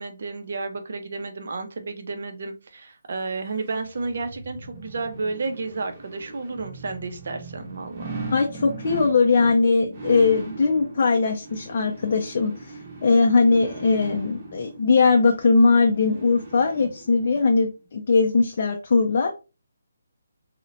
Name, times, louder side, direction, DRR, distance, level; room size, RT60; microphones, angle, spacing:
voice 1, 0.0-8.1, right 3 dB, 60° right, 7 dB, 0.5 m, -32 dB
sound 1, 3.5-17.4 17.8-17.9, right 3 dB, 30° right, 0.9 m, -39 dB
voice 2, 8.3-19.3, left 4 dB, 50° left, 3 dB, 0.4 m, -20 dB
2.7 x 2.0 x 2.6 m, 0.30 s
figure-of-eight pair, 150°, 0 cm